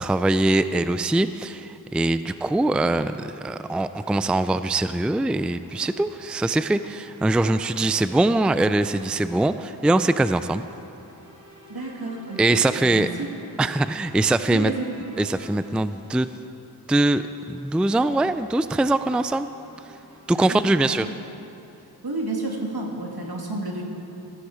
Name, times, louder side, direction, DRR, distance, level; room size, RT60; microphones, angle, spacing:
voice 1, 0.0-10.6 12.4-13.1 13.6-14.7 15.2-16.3 16.9-19.5 20.3-21.1, right 2 dB, 5° right, 12 dB, 0.4 m, -22 dB
sound 1, 2.3-16.7 17.4-20.4, left 1 dB, 55° right, 3.6 m, -48 dB
voice 2, 11.7-13.3 14.5-14.9 20.3-20.7 21.0-21.1 22.0-23.8, right 2 dB, 75° right, -1 dB, 2.5 m, -31 dB
16.0 x 14.5 x 5.0 m, 2.7 s
wide cardioid pair, 60°, 38 cm